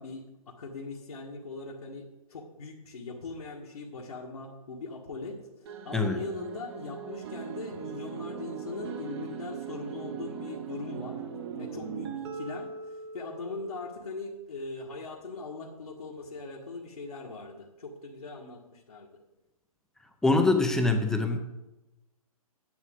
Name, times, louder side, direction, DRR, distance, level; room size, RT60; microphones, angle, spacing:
voice 1, 0.0-11.2 11.6-19.2, left 3 dB, 75° left, -2 dB, 1.6 m, -40 dB
sound 1, 5.7-14.1, right 7 dB, 45° right, 1.1 m, -40 dB
voice 2, 20.2-21.4, left 3 dB, 5° left, 5 dB, 0.5 m, -24 dB
10.5 x 9.5 x 3.7 m, 0.99 s
hypercardioid pair, 140°, 19 cm